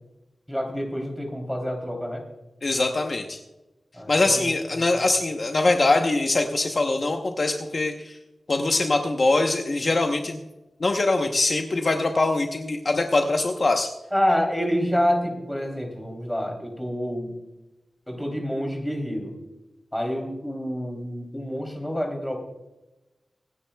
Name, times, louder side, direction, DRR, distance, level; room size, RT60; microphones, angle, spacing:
voice 1, 0.5-2.2 3.9-4.8 14.1-17.4 18.1-19.3 19.9-22.4, equal, 5° left, 2 dB, 3.2 m, -27 dB
voice 2, 2.6-3.4 4.1-8.2 8.5-10.4 10.8-13.9, left 2 dB, 45° left, 3 dB, 0.9 m, -23 dB
25.5 x 9.7 x 2.3 m, 1.0 s
wide cardioid pair, 120°, 0 cm